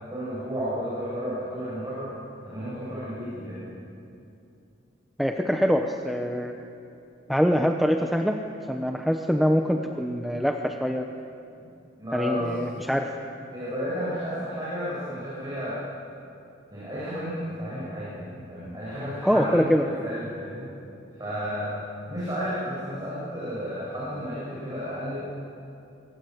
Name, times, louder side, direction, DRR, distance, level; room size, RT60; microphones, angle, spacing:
voice 1, 0.1-2.1 2.4-3.7 12.0-12.5 13.5-15.8 16.7-20.7 21.2-21.7 22.1-25.2, equal, 20° right, -9 dB, 8.0 m, -32 dB
voice 2, 5.2-6.5 7.3-8.4 8.7-11.0 12.1-13.1 19.2-19.9, equal, ahead, 3 dB, 0.9 m, -24 dB
25.0 x 23.5 x 8.0 m, 2.6 s
head